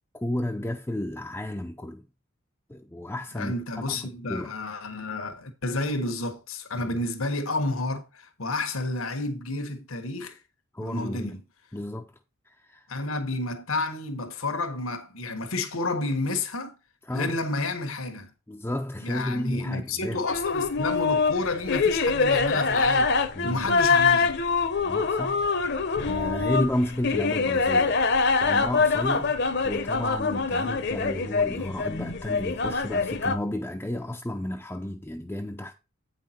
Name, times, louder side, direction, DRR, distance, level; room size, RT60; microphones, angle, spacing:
voice 1, 0.1-2.1 2.7-4.5 6.8-7.0 10.7-11.4 11.7-12.1 12.4-12.9 17.0-17.4 18.5-20.2 23.3-23.7 24.8-25.5 26.1-28.0 28.4-35.7, left 1 dB, 10° left, 0.5 m, -32 dB
voice 2, 3.3-10.4 10.8-11.4 12.9-16.8 17.1-18.3 19.0-24.3, left 2 dB, 85° left, 1.4 m, -30 dB
sound 1, 20.3-33.3, left 4 dB, 55° left, 0.9 m, -24 dB
8.5 x 5.8 x 4.3 m
head